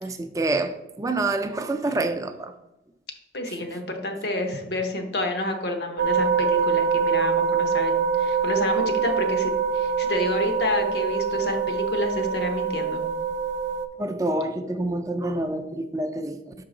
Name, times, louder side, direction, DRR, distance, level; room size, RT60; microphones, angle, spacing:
voice 1, 0.0-2.5 14.0-16.5, right 2 dB, 20° right, 7 dB, 0.3 m, -27 dB
voice 2, 3.3-13.0, left 1 dB, 70° left, 5 dB, 0.9 m, -29 dB
sound 1, 6.0-13.9, right 6 dB, 90° right, 0.5 m, -24 dB
5.9 x 4.7 x 3.7 m, 0.93 s
head